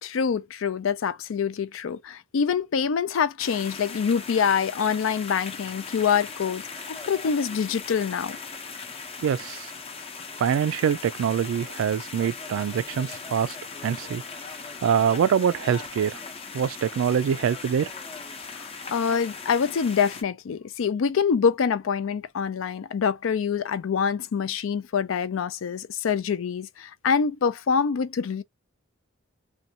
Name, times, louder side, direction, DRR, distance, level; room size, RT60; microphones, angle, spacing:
voice 1, 0.0-8.4 18.5-28.4, left 6 dB, 80° left, 0.4 m, -25 dB
sound 1, 3.4-20.2, left 4 dB, 30° left, 0.6 m, -39 dB
voice 2, 9.2-9.7 10.4-13.6 13.8-14.2 14.8-16.2 16.5-17.9, right 8 dB, 85° right, 0.3 m, -24 dB
2.6 x 2.2 x 2.7 m
head